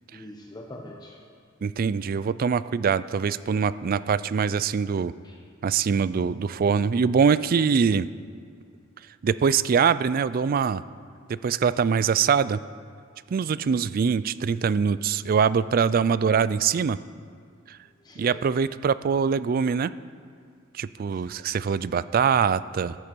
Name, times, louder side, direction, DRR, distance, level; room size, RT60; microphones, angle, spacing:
voice 1, 0.1-1.2 5.2-5.4 18.0-18.5 21.1-21.7, left 1 dB, 20° left, 1 dB, 0.8 m, -44 dB
voice 2, 1.6-5.1 5.6-8.1 9.2-10.8 11.3-12.6 13.3-17.0 17.7-17.8 18.2-19.9 20.7-23.0, right 6 dB, 45° right, 16 dB, 0.3 m, -23 dB
15.0 x 12.5 x 4.5 m, 2.1 s
head